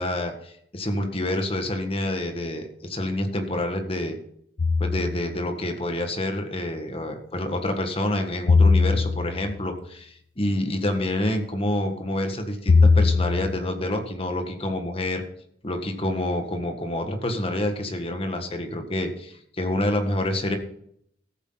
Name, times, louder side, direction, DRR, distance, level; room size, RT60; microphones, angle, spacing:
voice 1, 0.0-4.2 4.8-15.2 15.6-20.6, left 1 dB, 30° left, 5 dB, 1.6 m, -27 dB
sound 1, 4.6-5.4 8.5-9.5 12.7-13.6, left 4 dB, 80° left, 0.6 m, -19 dB
14.5 x 8.2 x 3.9 m, 0.68 s
head